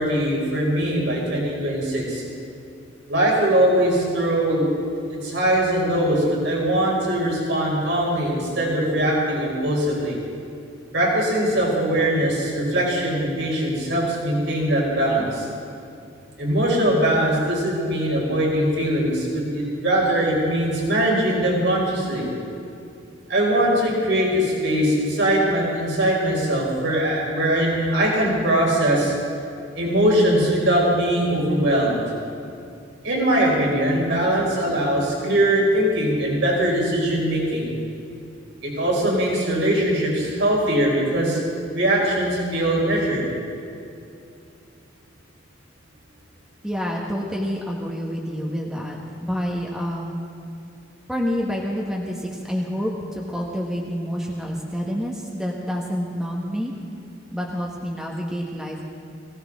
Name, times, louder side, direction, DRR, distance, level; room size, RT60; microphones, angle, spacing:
voice 1, 0.0-2.2 3.1-4.7 5.1-10.2 10.9-15.5 16.4-22.3 23.3-29.1 29.7-32.0 33.0-37.7 38.6-41.4 41.7-43.2, right 1 dB, 70° right, -3 dB, 4.3 m, -21 dB
voice 2, 46.6-50.2 51.1-56.7 57.3-58.8, equal, 5° right, -3 dB, 1.3 m, -28 dB
22.0 x 16.5 x 3.6 m, 2.6 s
head